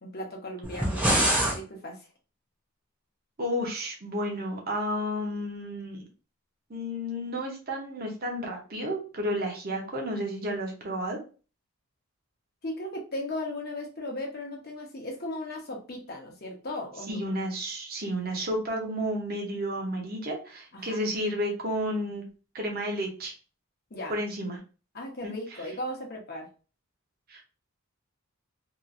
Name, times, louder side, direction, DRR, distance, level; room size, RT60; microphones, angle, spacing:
voice 1, 0.0-2.1 12.6-17.3 20.7-21.0 23.9-24.2 24.9-26.5, left 1 dB, 45° left, 1 dB, 0.9 m, -37 dB
sound 1, 0.6-1.6, right 1 dB, 5° right, 0.7 m, -24 dB
voice 2, 3.4-6.0 6.7-11.2 17.1-22.3 22.5-23.3 24.1-24.6 25.2-25.3 27.3-27.4, equal, 45° right, 0 dB, 0.8 m, -31 dB
2.9 x 2.5 x 2.5 m, 0.35 s
head